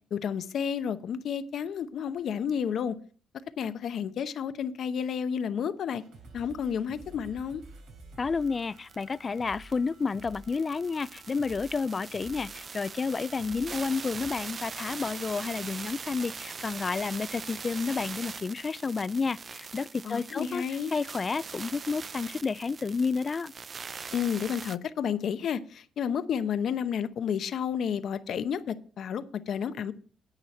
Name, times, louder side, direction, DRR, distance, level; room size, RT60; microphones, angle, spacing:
voice 1, 0.1-3.0 3.6-6.0 6.3-7.6 20.0-20.9 24.1-29.9, left 7 dB, 65° left, 0.8 m, -31 dB
sound 1, 5.9-14.3, right 2 dB, 85° right, 3.6 m, -51 dB
voice 2, 8.2-20.6 20.9-23.5, left 4 dB, 35° left, 0.4 m, -30 dB
sound 2, 8.5-8.6 8.8-24.8, right 5 dB, 40° right, 0.4 m, -42 dB
11.0 x 8.8 x 4.3 m
cardioid pair, 90°, 0 cm